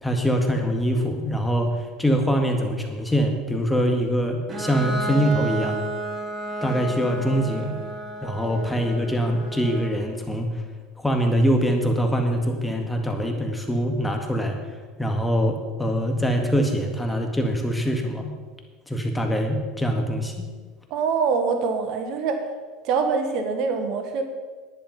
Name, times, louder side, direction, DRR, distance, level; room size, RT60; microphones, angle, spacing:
voice 1, 0.0-5.8 6.6-7.8 8.2-10.6 11.0-14.6 15.0-18.3 18.9-20.4, equal, 5° left, 3 dB, 1.9 m, -23 dB
Bowed string instrument, 4.5-10.1, right 2 dB, 30° right, 2.4 m, -32 dB
voice 2, 20.9-22.5 22.8-24.2, right 5 dB, 60° right, 6 dB, 1.6 m, -24 dB
11.0 x 10.0 x 5.4 m, 1.4 s
supercardioid pair, 105°, 0 cm